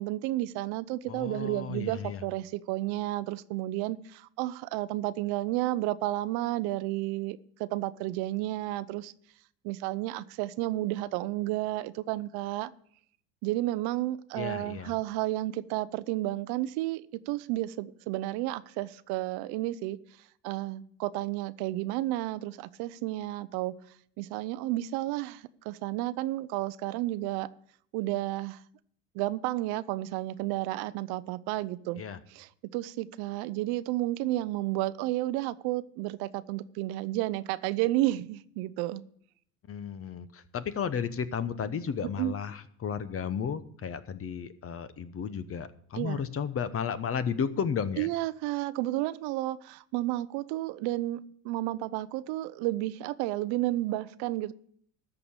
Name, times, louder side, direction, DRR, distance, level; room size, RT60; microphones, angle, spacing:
voice 1, 0.0-9.1 9.6-12.7 13.4-20.0 20.4-23.7 24.2-27.5 27.9-28.6 29.1-32.0 32.3-39.0 42.2-42.3 46.0-46.2 48.0-51.2 51.4-54.5, right 16 dB, 60° right, 0.7 m, -32 dB
voice 2, 1.1-2.2 14.3-14.9 31.9-32.2 39.7-48.1, left 7 dB, 30° left, 1.0 m, -33 dB
13.5 x 4.9 x 8.8 m
hypercardioid pair, 80°, 43 cm